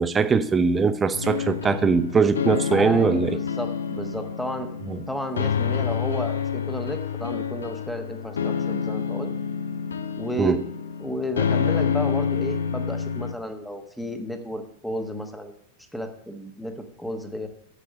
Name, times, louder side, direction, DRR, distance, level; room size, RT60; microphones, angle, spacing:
voice 1, 0.0-3.4 4.9-5.0 10.4-10.6, right 5 dB, 15° right, 13 dB, 0.7 m, -21 dB
sound 1, 1.1-13.3, left 7 dB, 70° left, 0.6 m, -28 dB
voice 2, 2.7-4.7 5.1-9.3 10.2-10.6 11.0-15.5 15.9-17.5, equal, ahead, 6 dB, 1.3 m, -32 dB
8.3 x 7.6 x 6.7 m, 0.78 s
figure-of-eight pair, 90°, 0 cm